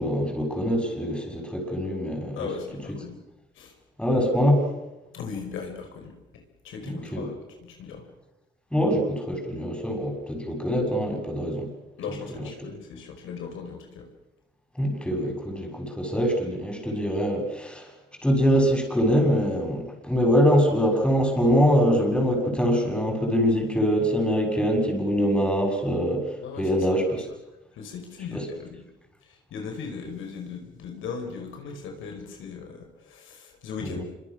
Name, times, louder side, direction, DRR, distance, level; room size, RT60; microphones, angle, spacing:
voice 1, 0.0-2.5 4.0-4.7 6.8-7.3 8.7-11.7 14.8-17.9 18.2-26.2 26.6-27.2 28.3-28.4 33.8-34.0, equal, 5° left, 2 dB, 6.8 m, -24 dB
voice 2, 2.3-3.2 3.5-3.7 5.1-8.0 12.0-14.1 26.4-27.2 27.7-28.8 29.2-34.0, left 5 dB, 80° left, 3 dB, 5.1 m, -38 dB
26.0 x 24.5 x 6.2 m, 1.0 s
cardioid pair, 90°, 20 cm